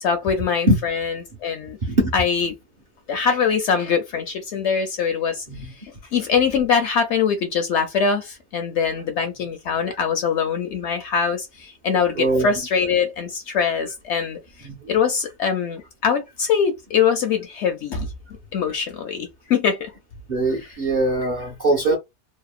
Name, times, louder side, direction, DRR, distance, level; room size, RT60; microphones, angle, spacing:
voice 1, 0.0-1.8 2.1-2.5 3.1-5.4 6.1-18.1 18.5-19.9 21.9-22.0, left 6 dB, 65° left, 0.7 m, -23 dB
voice 2, 1.8-2.1 5.5-5.7 12.2-12.5 14.6-14.9 20.3-22.0, right 1 dB, 50° right, 0.6 m, -21 dB
2.8 x 2.0 x 2.3 m
omnidirectional pair, 1.5 m